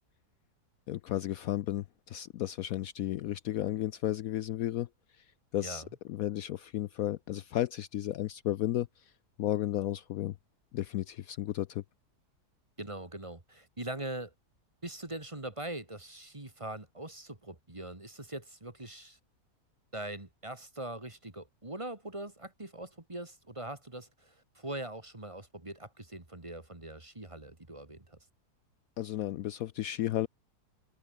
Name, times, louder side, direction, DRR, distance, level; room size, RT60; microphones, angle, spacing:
voice 1, 0.9-4.9 5.5-5.8 6.1-8.9 9.4-10.3 10.7-11.8 29.0-30.3, left 13 dB, 70° left, 1.0 m, -33 dB
voice 2, 12.8-14.3 14.8-19.2 19.9-28.2, right 1 dB, 20° right, 2.1 m, -42 dB
omnidirectional pair, 1.7 m